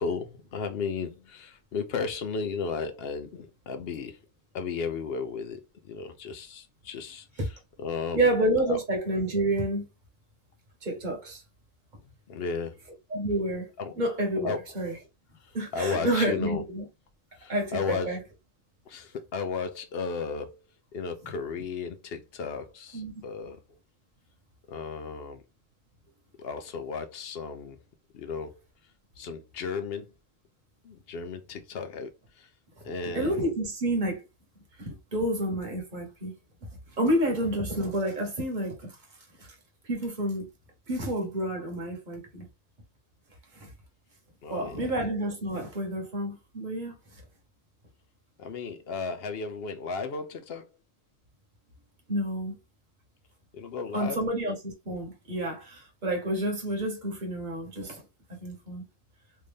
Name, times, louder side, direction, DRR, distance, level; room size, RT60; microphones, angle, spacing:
voice 1, 0.0-4.2 4.5-8.3 8.7-8.8 12.3-12.8 13.8-13.9 14.4-14.6 15.4-16.6 17.4-18.2 18.9-20.6 20.9-23.6 24.7-25.4 26.4-27.8 28.1-28.6 29.2-30.1 30.8-32.5 32.8-33.5 44.4-44.9 48.4-50.7 53.5-54.2, left 5 dB, 60° left, 0.7 m, -34 dB
voice 2, 8.1-9.8 10.8-11.4 13.1-13.7 13.9-14.9 15.5-16.8 17.5-18.2 22.9-23.1 33.0-34.2 34.8-36.3 37.0-39.0 39.4-39.5 39.8-40.5 40.9-42.5 43.5-43.7 44.5-46.9 52.1-52.5 53.9-58.0 58.4-58.8, right 1 dB, 40° right, 1.2 m, -29 dB
3.2 x 2.6 x 3.4 m
omnidirectional pair, 1.3 m